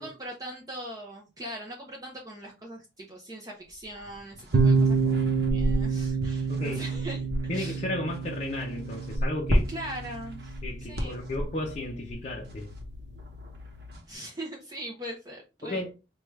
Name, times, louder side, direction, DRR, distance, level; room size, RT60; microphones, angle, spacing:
voice 1, 0.0-7.8 9.7-10.4 10.9-11.2 14.1-15.8, right 1 dB, 20° right, 0.6 m, -41 dB
sound 1, 3.7-14.1, equal, 60° right, 0.9 m, -34 dB
sound 2, 4.5-14.0, right 4 dB, 75° right, 0.5 m, -29 dB
voice 2, 6.5-6.8 7.5-9.7 10.6-12.7 15.6-15.9, left 1 dB, 35° left, 0.5 m, -34 dB
4.7 x 2.3 x 3.1 m
head